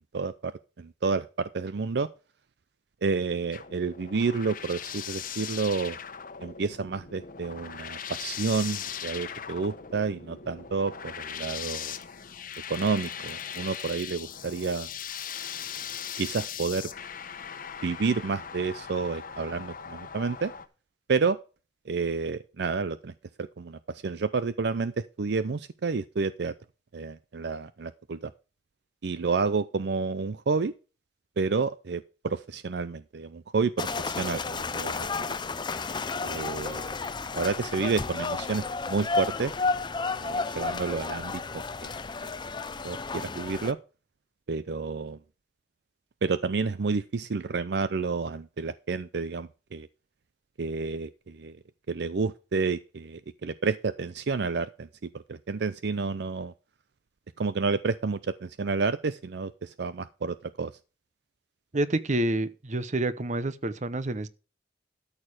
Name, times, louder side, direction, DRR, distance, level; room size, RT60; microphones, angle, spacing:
voice 1, 0.1-2.1 3.0-6.0 6.4-12.0 12.7-14.9 16.2-16.9 17.8-20.5 21.1-21.4 21.9-23.1 23.4-26.5 26.9-28.3 29.0-30.7 31.4-35.4 36.2-37.0 37.3-39.5 40.2-41.9 42.2-42.3 42.8-43.8 44.5-45.2 46.2-49.9 50.6-51.6 51.9-54.9 55.1-56.5 57.4-60.7, right 4 dB, 65° right, 0.5 m, -30 dB
sound 1, 3.5-20.7, left 8 dB, 50° left, 1.1 m, -39 dB
sound 2, 33.8-43.7, left 4 dB, 25° left, 0.6 m, -32 dB
voice 2, 61.7-64.3, right 1 dB, 45° right, 0.9 m, -28 dB
13.0 x 6.6 x 4.9 m
head